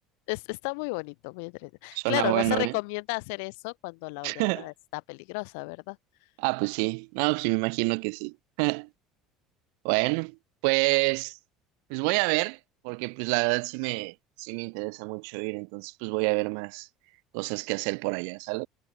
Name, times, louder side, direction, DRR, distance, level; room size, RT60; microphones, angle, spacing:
voice 1, 0.3-6.0, left 33 dB, 85° left, 3.1 m, -33 dB
voice 2, 1.9-2.7 4.2-4.7 6.4-8.9 9.8-10.3 10.6-11.4 11.9-12.6 12.8-16.9 17.3-18.7, right 40 dB or more, 80° right, 0.6 m, -28 dB
cardioid pair, 135°, 0 cm